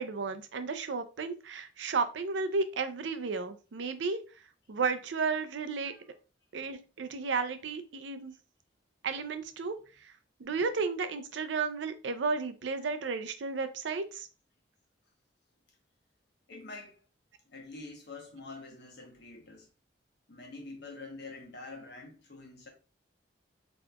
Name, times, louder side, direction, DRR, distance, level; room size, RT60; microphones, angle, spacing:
voice 1, 0.0-4.2 4.7-5.9 6.5-8.3 9.0-9.8 10.4-14.3, right 4 dB, 75° right, 0.5 m, -33 dB
voice 2, 16.5-17.0 17.5-19.7 20.3-22.7, left 3 dB, 65° left, 1.1 m, -46 dB
4.1 x 2.9 x 2.3 m
head